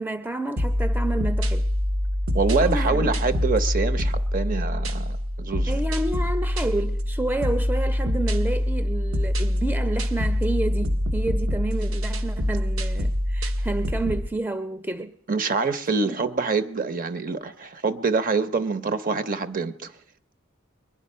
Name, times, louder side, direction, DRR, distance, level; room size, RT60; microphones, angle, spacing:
voice 1, 0.0-1.7 2.6-3.1 5.7-15.1 16.0-16.2, right 2 dB, 10° right, 0.5 m, -30 dB
sound 1, 0.6-14.3, left 1 dB, 75° right, 0.9 m, -25 dB
voice 2, 2.3-5.8 15.3-19.9, right 4 dB, 40° right, 0.7 m, -25 dB
22.0 x 11.0 x 5.5 m
head